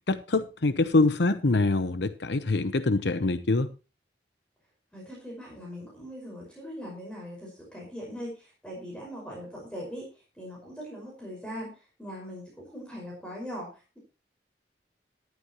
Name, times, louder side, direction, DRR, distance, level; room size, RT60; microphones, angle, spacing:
voice 1, 0.1-3.7, left 3 dB, 65° left, 0.8 m, -24 dB
voice 2, 4.9-14.0, equal, 5° left, 5.4 m, -41 dB
13.5 x 12.0 x 3.0 m
head